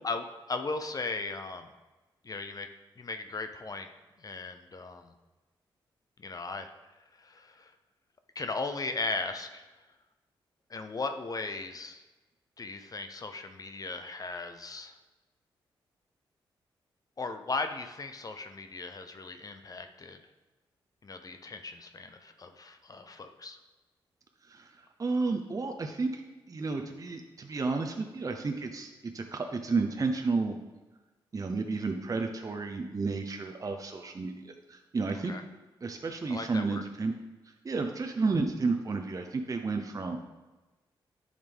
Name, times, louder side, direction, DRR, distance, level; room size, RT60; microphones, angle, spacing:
voice 1, 0.0-1.7 2.2-2.7 3.0-3.9 4.2-5.1 6.2-6.7 7.2-7.7 8.3-9.7 10.7-12.0 12.6-15.0 17.2-20.2 21.0-23.6 35.1-35.4 36.3-36.8, left 3 dB, 40° left, 7 dB, 0.7 m, -37 dB
voice 2, 24.4-26.2 26.5-30.6 31.3-35.3 35.8-37.1 37.6-40.2, right 4 dB, 40° right, 4 dB, 0.7 m, -32 dB
10.5 x 6.6 x 3.5 m, 1.2 s
cardioid pair, 65°, 9 cm